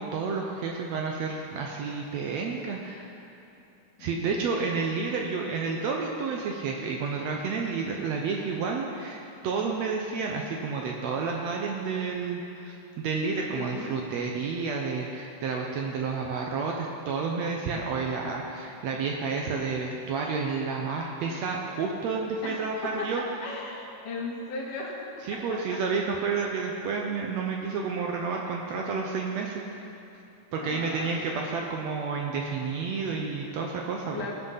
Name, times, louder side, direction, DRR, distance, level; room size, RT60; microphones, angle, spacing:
voice 1, 0.0-3.1 4.0-9.2 9.4-23.2 25.3-29.9 30.5-34.3, right 4 dB, 70° right, 0 dB, 1.7 m, -30 dB
voice 2, 13.5-14.0 22.4-25.8 30.5-31.2 34.1-34.3, left 3 dB, 75° left, -2 dB, 2.9 m, -37 dB
16.0 x 5.9 x 5.6 m, 2.8 s
omnidirectional pair, 3.7 m